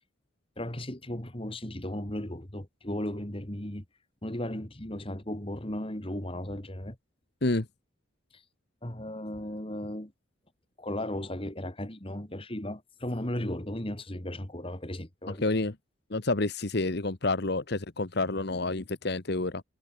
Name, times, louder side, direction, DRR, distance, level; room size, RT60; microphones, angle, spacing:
voice 1, 0.6-3.8 4.2-7.0 8.3-8.4 8.8-10.1 10.8-15.5, left 1 dB, 30° left, 2.4 m, -36 dB
voice 2, 15.3-15.7 16.1-19.6, left 2 dB, 55° left, 1.2 m, -29 dB
head